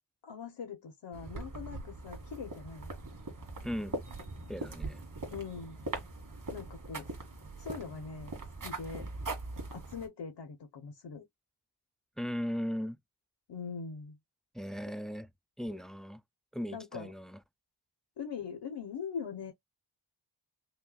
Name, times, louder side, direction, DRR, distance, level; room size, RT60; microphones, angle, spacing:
voice 1, 0.2-2.9 5.3-5.8 6.5-7.1 7.6-8.3 8.6-9.1 9.7-11.2 13.5-14.2 16.7-17.1 18.2-19.5, left 6 dB, 85° left, 1.1 m, -42 dB
sound 1, 1.1-10.1, right 2 dB, 50° right, 1.9 m, -41 dB
voice 2, 3.6-4.0 4.5-5.0 12.2-13.0 14.5-15.3 15.6-16.2 16.5-17.4, equal, ahead, 0.3 m, -37 dB
5.4 x 2.3 x 2.4 m
wide cardioid pair, 95°, 41 cm